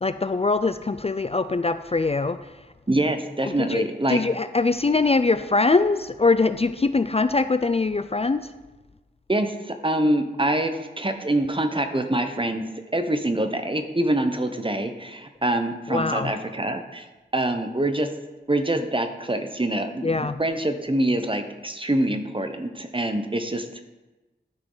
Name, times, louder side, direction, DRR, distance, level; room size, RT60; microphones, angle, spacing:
voice 1, 0.0-2.4 3.5-8.5 15.9-16.3 20.0-20.4, left 3 dB, 35° left, 11 dB, 0.3 m, -22 dB
voice 2, 2.9-4.2 9.3-12.6 12.9-17.0 17.3-18.1 18.5-20.1 20.4-23.8, right 1 dB, 30° right, 7 dB, 0.8 m, -25 dB
12.0 x 6.2 x 3.9 m, 1.1 s
wide cardioid pair, 50°, 18 cm